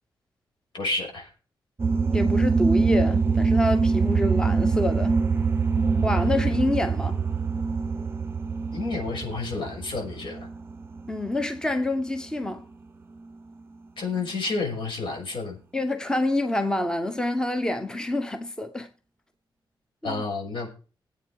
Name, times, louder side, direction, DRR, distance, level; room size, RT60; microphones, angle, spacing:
voice 1, 0.7-1.3 6.2-6.5 8.7-10.5 14.0-15.6 20.0-20.7, left 3 dB, 75° left, 6.0 m, -30 dB
sound 1, 1.8-11.7, right 4 dB, 30° right, 0.6 m, -24 dB
voice 2, 2.1-5.2 6.0-7.2 11.1-12.7 15.7-18.9 20.0-20.2, left 1 dB, 10° left, 0.9 m, -27 dB
17.0 x 8.4 x 4.7 m
wide cardioid pair, 165°, 8 cm